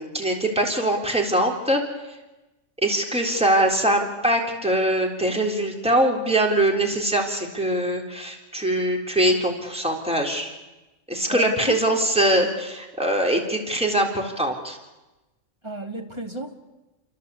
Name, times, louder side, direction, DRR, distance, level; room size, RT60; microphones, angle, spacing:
voice 1, 0.0-2.2 2.8-10.5 11.1-14.8, right 1 dB, 5° right, 1 dB, 3.7 m, -23 dB
voice 2, 11.3-11.8 15.6-16.5, right 1 dB, 20° right, 3 dB, 2.7 m, -33 dB
29.5 x 24.0 x 8.4 m, 1.1 s
omnidirectional pair, 1.3 m